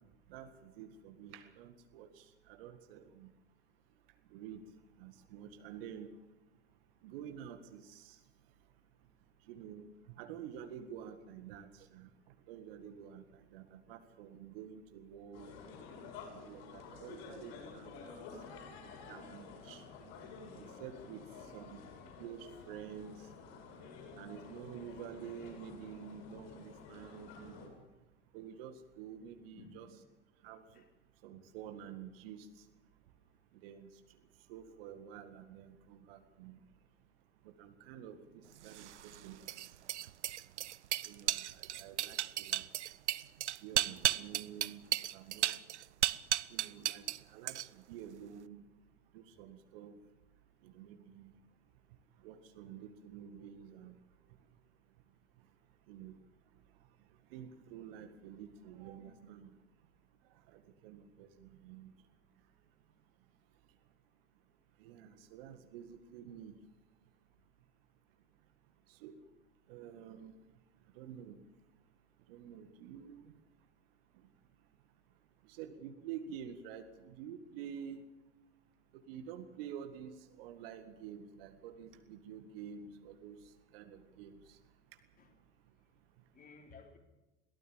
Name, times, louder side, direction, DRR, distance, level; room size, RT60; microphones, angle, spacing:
voice 1, 0.3-3.3 4.3-4.6 5.0-6.1 7.0-8.2 9.5-12.1 12.5-15.5 16.3-18.2 19.1-19.8 20.5-21.2 21.5-21.8 22.2-23.2 24.2-27.7 28.3-29.9 30.4-30.6 31.2-32.5 33.6-33.9 34.5-36.6 37.4-39.5 41.0-42.6 43.6-44.8 45.1-45.6 46.5-48.6 49.1-49.9 50.6-51.3 52.2-53.9 55.9-56.2 57.3-59.5 60.5-61.9 64.8-66.5 69.0-69.1 69.7-70.3 71.0-71.4 72.3-73.2 75.5-78.0 78.9-83.4 83.7-84.6, right 8 dB, 50° right, 8 dB, 2.0 m, -49 dB
sound 1, 15.3-27.7, left 5 dB, 45° left, 6.9 m, -51 dB
voice 2, 29.2-30.0 30.7-30.9 85.1-85.4 86.3-87.0, left 4 dB, 25° left, 2 dB, 4.3 m, -58 dB
sound 2, 38.7-47.2 47.5-47.9, right 12 dB, 65° right, 0.7 m, -35 dB
22.5 x 17.5 x 7.3 m, 1.0 s
figure-of-eight pair, 85°, 36 cm